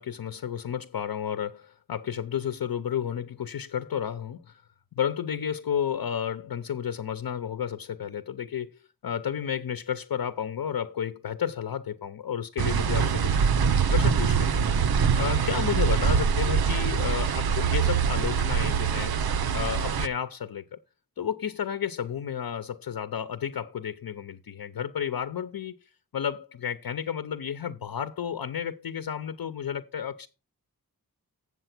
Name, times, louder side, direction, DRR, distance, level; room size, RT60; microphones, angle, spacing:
voice 1, 0.0-4.6 4.9-13.4 13.9-14.7 15.2-19.1 19.5-20.8 21.2-30.3, left 8 dB, 80° left, 0.8 m, -32 dB
sound 1, 12.6-20.1, right 6 dB, 85° right, 0.7 m, -24 dB
8.0 x 7.4 x 6.0 m
wide cardioid pair, 60°, 36 cm